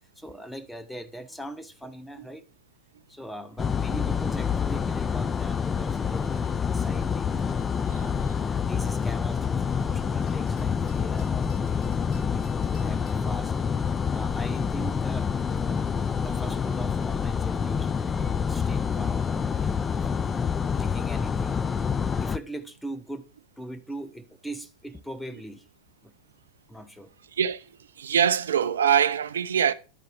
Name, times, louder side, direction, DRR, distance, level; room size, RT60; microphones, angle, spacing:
voice 1, 0.2-2.5 3.1-7.4 7.8-11.9 12.1-20.3 20.7-21.6 22.2-23.3 23.6-25.7 26.0-26.1 26.7-27.1, right 1 dB, 5° left, 0.7 m, -41 dB
sound 1, 3.6-22.4, left 6 dB, 20° left, 0.3 m, -27 dB
sound 2, 7.1-13.1, left 5 dB, 40° left, 2.3 m, -51 dB
voice 2, 27.4-27.7 28.0-29.7, right 8 dB, 65° right, 0.5 m, -23 dB
11.0 x 4.7 x 4.3 m
figure-of-eight pair, 90°, 0 cm